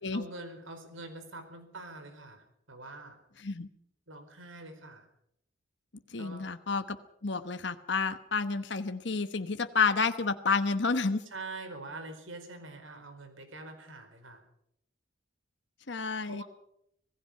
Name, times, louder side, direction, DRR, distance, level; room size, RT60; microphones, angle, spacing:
voice 1, 0.1-3.2 4.1-5.1 6.2-6.6 11.3-14.4 16.3-16.4, right 2 dB, 85° right, 8 dB, 4.6 m, -45 dB
voice 2, 3.4-3.7 6.1-7.0 7.2-11.2 15.9-16.4, left 4 dB, 60° left, 9 dB, 1.1 m, -30 dB
26.0 x 18.0 x 5.7 m, 0.75 s
head